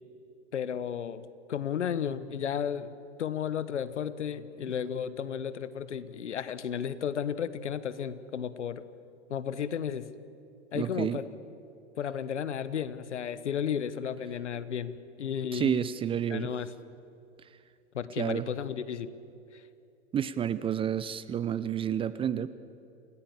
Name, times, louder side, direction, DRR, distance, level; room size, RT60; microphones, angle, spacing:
voice 1, 0.5-2.9 3.2-8.8 9.3-10.1 10.7-11.2 12.0-15.8 16.3-16.7 17.9-19.1 19.5-19.6, left 8 dB, 80° left, 15 dB, 1.3 m, -33 dB
voice 2, 10.7-11.2 15.5-16.5 18.2-18.5 20.1-22.5, right 9 dB, 15° right, 15 dB, 0.5 m, -30 dB
28.0 x 18.5 x 7.4 m, 2.6 s
hypercardioid pair, 115°, 35 cm